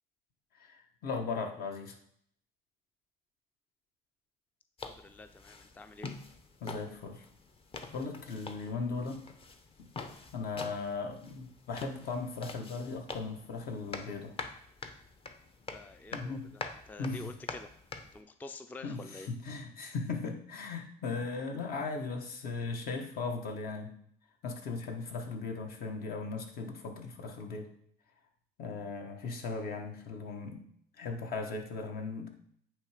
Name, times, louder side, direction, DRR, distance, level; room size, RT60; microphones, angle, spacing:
voice 1, 0.5-2.0 6.6-7.2 7.9-9.2 10.3-14.4 16.1-16.5 17.0-17.3 18.8-23.9 24.4-27.7 28.6-30.7 31.0-32.3, left 4 dB, 65° left, 4 dB, 1.4 m, -37 dB
sound 1, 4.8-18.2, left 3 dB, 35° left, 0.8 m, -46 dB
voice 2, 4.8-6.1 15.7-17.7 18.1-19.3, left 2 dB, 10° left, 9 dB, 0.3 m, -48 dB
9.0 x 3.4 x 5.0 m, 0.65 s
cardioid pair, 110°, 17 cm